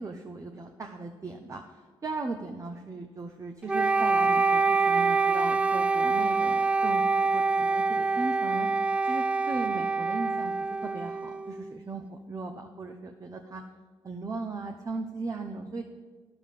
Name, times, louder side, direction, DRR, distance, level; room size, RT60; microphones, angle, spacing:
voice 1, 0.0-13.6 14.0-15.8, right 3 dB, 35° right, 5 dB, 0.9 m, -37 dB
Wind instrument woodwind instrument, 3.7-11.7, right 4 dB, 10° right, 0.3 m, -25 dB
10.5 x 6.9 x 7.5 m, 1.4 s
supercardioid pair, 70°, 10 cm